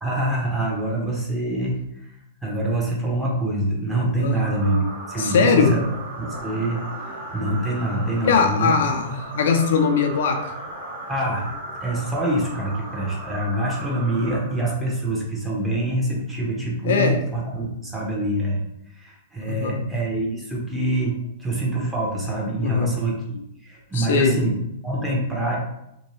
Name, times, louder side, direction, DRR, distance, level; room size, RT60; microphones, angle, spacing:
voice 1, 0.0-1.8 2.4-5.9 6.2-8.7 11.1-11.5 11.8-18.6 18.9-24.5 24.8-25.6, right 1 dB, 10° right, -4 dB, 0.8 m, -25 dB
sound 1, 4.3-15.1, right 2 dB, 55° right, 0.8 m, -36 dB
voice 2, 5.2-5.8 8.2-10.4 16.8-17.2 19.5-19.9 22.6-22.9 23.9-24.4, left 5 dB, 70° left, 5 dB, 0.4 m, -20 dB
2.6 x 2.2 x 3.2 m, 0.81 s
hypercardioid pair, 130°, 0 cm